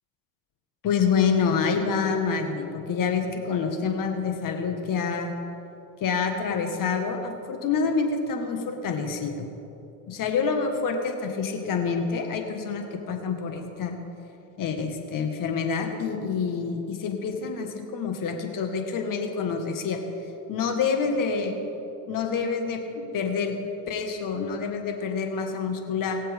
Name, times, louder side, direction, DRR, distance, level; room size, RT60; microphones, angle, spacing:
voice 1, 0.8-5.3 6.0-9.5 10.1-13.9 14.6-20.0 20.5-21.6 22.1-23.6 23.9-26.2, left 5 dB, 55° left, 4 dB, 1.6 m, -27 dB
21.5 x 7.5 x 3.5 m, 2.9 s
supercardioid pair, 90°, 40 cm